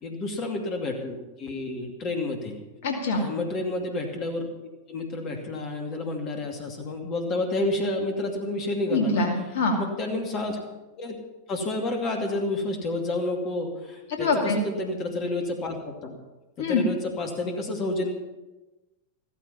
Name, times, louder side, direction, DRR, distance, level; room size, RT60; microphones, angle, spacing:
voice 1, 0.0-2.6 3.1-4.5 4.9-9.3 9.8-10.6 11.0-11.2 11.5-16.2 16.6-18.1, left 2 dB, 35° left, 3 dB, 2.5 m, -30 dB
voice 2, 2.8-3.2 8.9-9.8 14.1-14.6 16.6-16.9, left 3 dB, 55° left, 2 dB, 2.5 m, -24 dB
15.0 x 14.0 x 5.6 m, 1.1 s
figure-of-eight pair, 90°, 0 cm